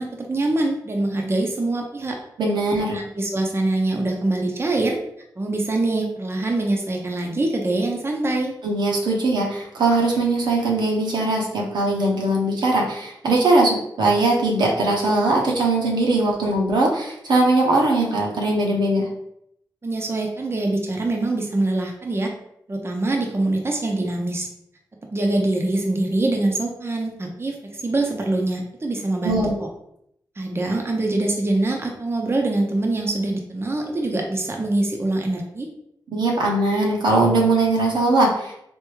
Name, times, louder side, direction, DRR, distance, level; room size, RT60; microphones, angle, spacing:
voice 1, 0.0-2.2 2.9-5.0 5.4-8.5 19.8-22.3 22.7-24.5 25.1-29.7 30.4-35.7, right 2 dB, 35° right, 1 dB, 0.7 m, -24 dB
voice 2, 2.4-3.0 8.6-19.1 29.2-29.5 36.1-38.5, right 2 dB, 80° right, -2 dB, 0.9 m, -20 dB
3.5 x 2.6 x 3.0 m, 0.75 s
cardioid pair, 45°, 7 cm